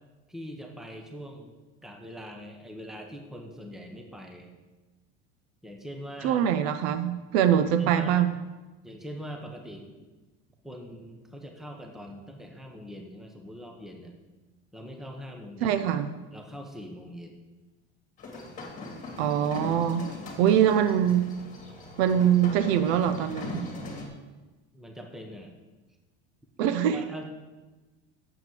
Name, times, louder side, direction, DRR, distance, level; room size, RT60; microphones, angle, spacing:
voice 1, 0.3-1.5 1.8-4.6 5.6-6.5 7.8-8.2 8.8-9.9 10.6-14.1 14.7-15.8 16.3-17.3 20.1-20.5 24.7-25.5 26.9-27.2, equal, ahead, 3 dB, 1.0 m, -42 dB
voice 2, 6.2-8.3 15.6-16.1 19.2-20.1 20.4-21.3 22.0-23.6 26.6-27.0, right 9 dB, 75° right, 10 dB, 0.7 m, -23 dB
sound 1, 18.2-24.1, left 2 dB, 25° left, 2.2 m, -40 dB
7.2 x 5.9 x 7.6 m, 1.2 s
supercardioid pair, 135°, 32 cm